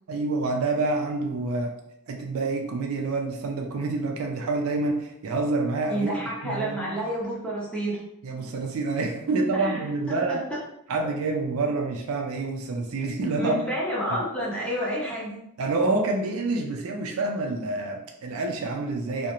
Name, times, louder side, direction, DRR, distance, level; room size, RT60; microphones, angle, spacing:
voice 1, 0.1-1.7 2.1-6.2 6.4-7.0 8.2-10.4 10.9-13.6 14.1-14.2 15.6-19.3, right 3 dB, 75° right, 3 dB, 0.4 m, -27 dB
voice 2, 5.9-8.0 9.5-10.6 11.0-11.1 13.4-15.4, equal, 5° left, -6 dB, 0.6 m, -30 dB
2.4 x 2.1 x 2.8 m, 0.78 s
head